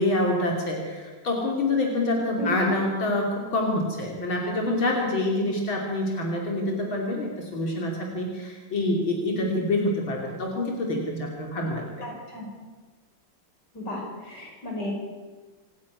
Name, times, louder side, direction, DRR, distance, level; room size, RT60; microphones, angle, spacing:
voice 1, 0.0-12.1, left 1 dB, 80° left, 0 dB, 3.7 m, -26 dB
voice 2, 12.0-12.5 13.7-14.9, left 1 dB, 55° left, -1 dB, 6.7 m, -34 dB
27.0 x 11.5 x 9.7 m, 1.4 s
omnidirectional pair, 2.2 m